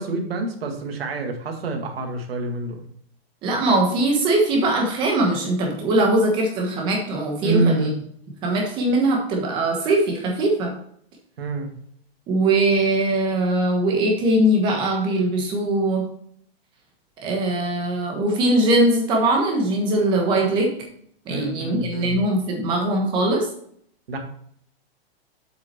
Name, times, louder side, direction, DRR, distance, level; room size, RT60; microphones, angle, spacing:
voice 1, 0.0-2.8 7.4-7.9 11.4-11.7 21.3-22.2 24.1-24.2, right 2 dB, 70° right, 3 dB, 2.1 m, -26 dB
voice 2, 3.4-7.9 8.4-10.7 12.3-16.0 17.2-20.7 21.3-23.5, right 1 dB, 15° right, 1 dB, 1.3 m, -21 dB
7.7 x 5.9 x 4.4 m, 0.63 s
hypercardioid pair, 175°, 31 cm